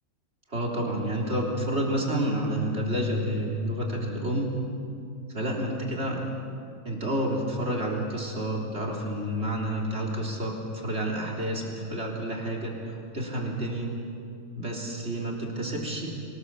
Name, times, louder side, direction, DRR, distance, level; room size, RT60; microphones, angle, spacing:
voice 1, 0.5-4.5 5.3-6.2 6.8-13.9 14.6-16.1, right 1 dB, 45° right, -2 dB, 3.8 m, -29 dB
24.0 x 19.5 x 7.0 m, 2.5 s
omnidirectional pair, 1.6 m